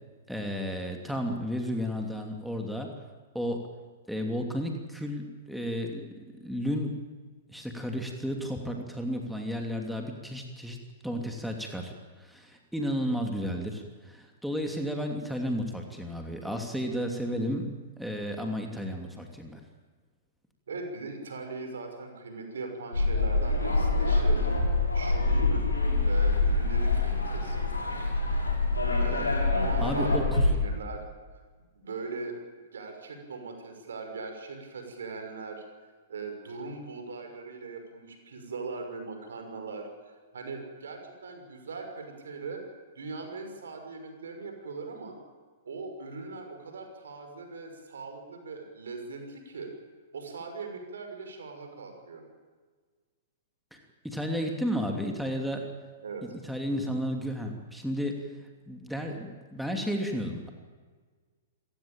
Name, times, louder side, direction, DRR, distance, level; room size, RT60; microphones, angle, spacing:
voice 1, 0.3-2.9 3.3-3.7 4.1-6.1 6.4-7.0 7.5-11.9 12.2-19.6 29.8-30.5 53.7-53.8 54.0-55.7 56.2-58.3 58.7-60.5, equal, ahead, 2 dB, 2.9 m, -33 dB
voice 2, 20.7-25.7 26.0-27.6 29.0-31.0 31.7-32.4 32.7-35.6 36.1-42.6 42.9-45.2 45.6-49.7 50.1-52.2 56.0-56.2 56.8-56.9, right 3 dB, 70° right, 5 dB, 6.1 m, -40 dB
sound 1, 22.9-30.5, left 2 dB, 85° left, 6.9 m, -25 dB
28.0 x 16.0 x 9.0 m, 1.5 s
figure-of-eight pair, 105°, 0 cm